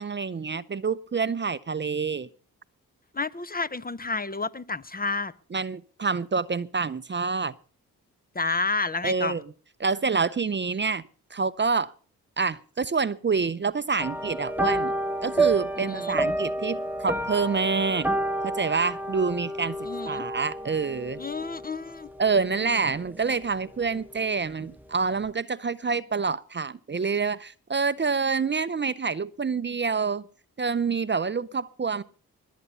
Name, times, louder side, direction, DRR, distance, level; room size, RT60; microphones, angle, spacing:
voice 1, 0.0-2.3 5.5-7.5 9.0-9.4 9.8-11.0 11.3-11.9 12.4-14.9 15.2-18.1 18.4-19.8 20.0-21.2 22.2-30.3 30.6-32.0, right 5 dB, 30° right, 0.6 m, -27 dB
voice 2, 3.1-5.3 8.3-9.3 15.8-16.2 19.9-20.2 21.2-22.1, left 3 dB, 25° left, 0.7 m, -30 dB
sound 1, 14.0-23.6 23.8-24.2 24.6-24.7, right 1 dB, 5° right, 1.0 m, -30 dB
20.5 x 8.4 x 5.5 m
supercardioid pair, 45°, 37 cm